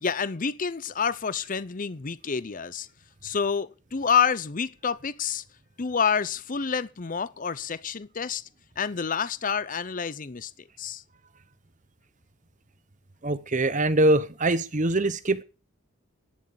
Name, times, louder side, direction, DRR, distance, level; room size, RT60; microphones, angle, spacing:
voice 1, 0.0-2.9 3.2-5.4 5.8-8.4 8.8-10.5 10.8-11.0, left 6 dB, 40° left, 0.7 m, -28 dB
voice 2, 13.2-15.4, right 2 dB, 35° right, 1.0 m, -23 dB
12.0 x 9.9 x 7.0 m
head